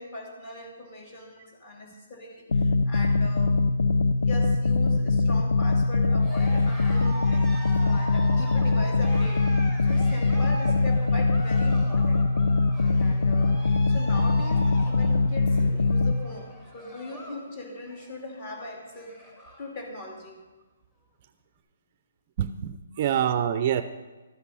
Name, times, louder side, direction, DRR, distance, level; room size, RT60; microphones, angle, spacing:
voice 1, 0.0-3.6 4.2-7.5 7.8-9.5 9.8-12.2 12.9-19.2 19.6-20.4, left 1 dB, 30° left, 1 dB, 2.6 m, -40 dB
sound 1, 2.5-16.1, left 3 dB, 85° left, 0.6 m, -22 dB
Cheering, 6.2-17.5 17.8-18.2 18.6-18.7 18.9-19.7, equal, 15° left, 1.9 m, -41 dB
voice 2, 22.4-23.8, right 9 dB, 35° right, 12 dB, 0.4 m, -26 dB
12.5 x 8.9 x 5.5 m, 1.2 s
hypercardioid pair, 165°, 0 cm